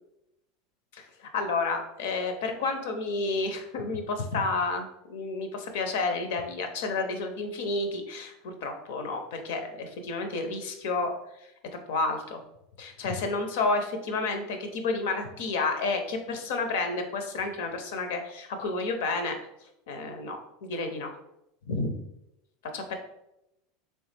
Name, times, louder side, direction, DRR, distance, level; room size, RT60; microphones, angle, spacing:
voice 1, 0.9-11.1 11.9-12.4 12.8-19.4 19.9-21.1 21.7-21.9 22.7-22.9, left 3 dB, 70° left, 6 dB, 0.6 m, -30 dB
3.4 x 3.1 x 3.3 m, 0.85 s
hypercardioid pair, 90°, 0 cm